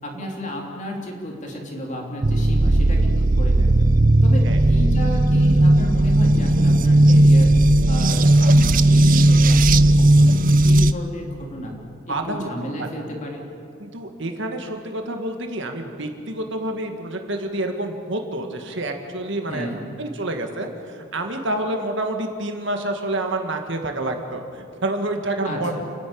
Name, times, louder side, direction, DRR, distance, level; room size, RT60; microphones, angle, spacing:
voice 1, 0.0-3.9 4.2-7.6 7.9-11.7 12.1-13.4 19.5-19.8 25.4-25.8, equal, 35° left, 0 dB, 3.2 m, -32 dB
sound 1, 2.2-10.9, right 1 dB, 40° right, 0.6 m, -15 dB
voice 2, 12.1-12.5 12.8-12.9 13.8-19.7 20.0-25.7, right 1 dB, 60° right, 4 dB, 2.0 m, -28 dB
29.5 x 11.0 x 8.7 m, 2.5 s
head